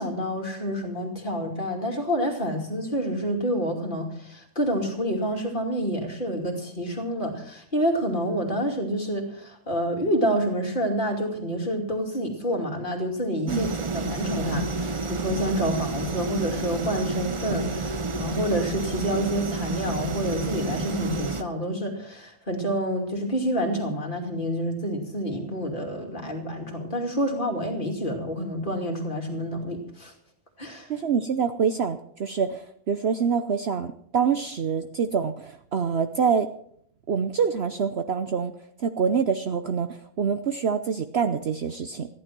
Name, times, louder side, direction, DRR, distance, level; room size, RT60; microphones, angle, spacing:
voice 1, 0.0-30.1 30.6-30.9, equal, 35° left, 2 dB, 2.8 m, -28 dB
sound 1, 13.5-21.4, right 3 dB, 35° right, 0.5 m, -30 dB
voice 2, 30.9-36.5 37.1-38.5 38.8-42.1, right 6 dB, 55° right, 8 dB, 0.9 m, -26 dB
14.5 x 12.0 x 6.0 m, 0.67 s
omnidirectional pair, 1.5 m